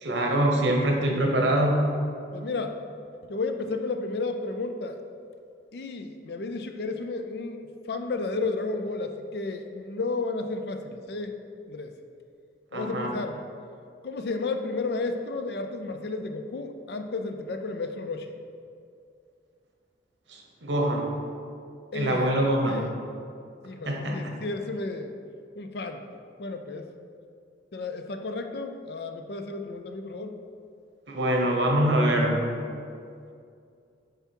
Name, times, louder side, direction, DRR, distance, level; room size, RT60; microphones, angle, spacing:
voice 1, 0.0-1.9 12.7-13.1 20.3-21.1 21.9-22.8 23.9-24.3 31.1-32.4, right 1 dB, 85° right, 0 dB, 1.0 m, -24 dB
voice 2, 2.3-2.8 3.2-5.0 5.7-11.4 11.7-12.0 12.7-13.4 14.0-18.3 21.9-23.0 23.6-25.2 25.6-26.0 26.4-26.9 27.7-30.4, left 3 dB, 60° left, 6 dB, 0.4 m, -32 dB
6.8 x 3.5 x 4.5 m, 2.4 s
head